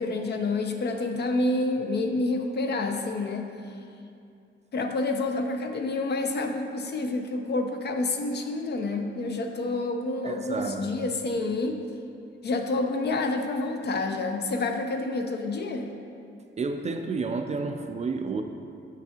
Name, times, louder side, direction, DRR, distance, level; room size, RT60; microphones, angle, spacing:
voice 1, 0.0-3.5 4.7-11.8 12.4-15.9, left 2 dB, 55° left, 5 dB, 0.6 m, -28 dB
voice 2, 10.2-11.1 16.6-18.4, right 4 dB, 35° right, 6 dB, 0.4 m, -31 dB
8.0 x 5.9 x 2.8 m, 2.5 s
cardioid pair, 120°, 21 cm